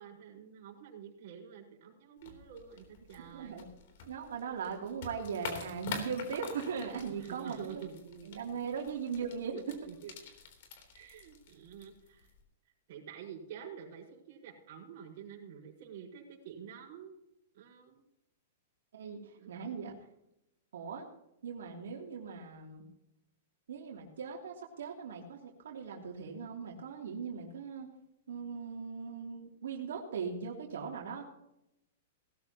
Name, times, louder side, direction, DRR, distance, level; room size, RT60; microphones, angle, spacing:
voice 1, 0.0-3.7 7.2-8.3 9.6-10.1 10.9-12.3 12.9-17.1 17.5-18.0 19.4-20.0, right 8 dB, 50° right, -2 dB, 5.2 m, -48 dB
sound 1, 2.2-12.4, left 5 dB, 55° left, 3.5 m, -47 dB
voice 2, 3.3-3.7 4.1-7.8 8.3-9.8 18.9-19.9 20.7-21.1 21.4-22.8 23.7-27.9 28.3-31.2, right 6 dB, 90° right, -2 dB, 3.0 m, -39 dB
19.0 x 13.0 x 3.0 m, 0.83 s
hypercardioid pair, 160°, 0 cm